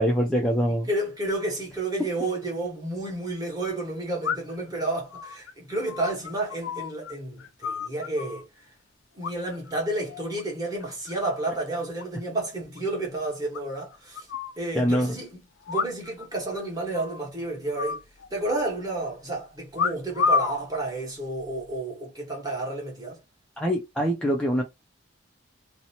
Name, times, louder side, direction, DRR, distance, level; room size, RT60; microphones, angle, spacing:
voice 1, 0.0-0.9 14.7-15.2 23.6-24.6, equal, 5° left, 0.3 m, -24 dB
voice 2, 0.9-8.5 9.2-14.3 14.6-15.4 15.7-18.0 18.3-23.2, right 2 dB, 20° right, 1.1 m, -31 dB
sound 1, 2.4-2.5 4.2-4.7 5.1-7.1 7.4-8.4 9.2-9.7 10.0-10.4 10.8-11.4 11.7-11.8 12.0-12.1 12.4-12.5 12.8-12.9 13.5-14.6 15.7-16.3 16.5-16.6 16.9-17.3 17.8-18.7 19.7-20.6 21.4-21.7, left 5 dB, 80° left, 0.4 m, -30 dB
2.7 x 2.0 x 2.7 m
head